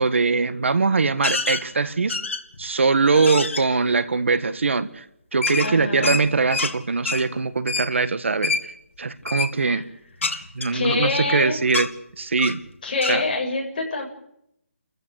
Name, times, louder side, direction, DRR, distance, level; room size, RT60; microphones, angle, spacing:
voice 1, 0.0-2.2 2.6-5.0 5.3-8.6 9.0-9.8 10.5-11.9 12.2-12.6 13.1-13.2, right 4 dB, 60° right, 13 dB, 1.6 m, -22 dB
sound 1, 1.2-1.6 2.1-2.6 3.1-3.6 5.4-6.7 7.0-7.2 7.7-7.9 8.4-8.6 9.2-9.5 10.2-11.3 11.7-11.9 12.4-12.6 13.0-13.2, left 4 dB, 65° left, 3.0 m, -26 dB
voice 2, 5.6-6.2 9.6-9.8 10.7-11.6 12.8-14.1, left 3 dB, 35° left, -1 dB, 7.7 m, -25 dB
29.0 x 15.0 x 8.2 m, 0.77 s
hypercardioid pair, 175°, 7 cm